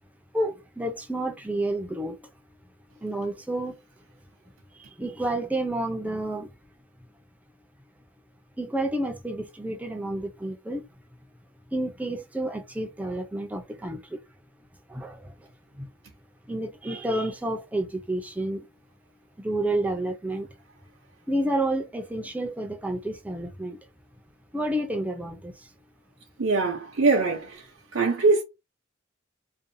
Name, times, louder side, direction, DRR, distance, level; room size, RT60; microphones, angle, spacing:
voice 1, 0.3-2.3 3.0-3.8 4.7-6.5 8.6-10.8 11.7-14.2 14.9-15.5 15.7-15.9 16.5-18.7 19.4-20.5 21.3-23.8 24.5-25.7, right 1 dB, 10° right, 0.5 m, -30 dB
voice 2, 26.4-27.6 27.9-28.4, right 3 dB, 65° right, 0.7 m, -22 dB
2.6 x 2.2 x 2.6 m
head